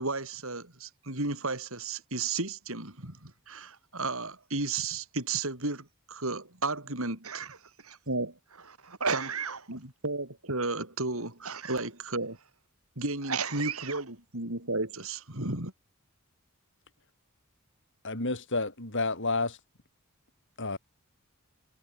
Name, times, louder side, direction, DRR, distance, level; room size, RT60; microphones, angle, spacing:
voice 1, 0.0-7.5 8.1-8.4 9.1-9.2 9.7-12.4 13.0-15.7, right 3 dB, 65° right, 5.7 m, -33 dB
voice 2, 7.2-8.0 8.6-9.6 11.4-11.9 13.2-14.0, right 6 dB, 90° right, 6.3 m, -34 dB
voice 3, 18.0-19.6 20.6-20.8, left 3 dB, 60° left, 7.0 m, -30 dB
head